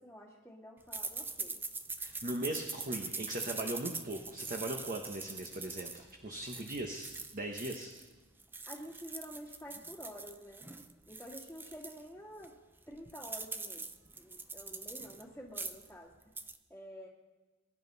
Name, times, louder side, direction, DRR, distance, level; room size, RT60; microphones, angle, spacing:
voice 1, 0.0-1.6 8.7-10.6 11.1-12.5 12.9-13.9 14.1-16.3 16.7-17.1, equal, 5° left, -7 dB, 1.8 m, -49 dB
sound 1, 0.9-8.1 8.4-12.0 12.4-12.5 12.8-15.2 15.5-15.9 16.2-16.6, right 3 dB, 10° right, 0.6 m, -43 dB
voice 2, 2.0-7.9, right 1 dB, 40° right, 2 dB, 1.2 m, -39 dB
23.0 x 11.0 x 4.1 m, 1.2 s
head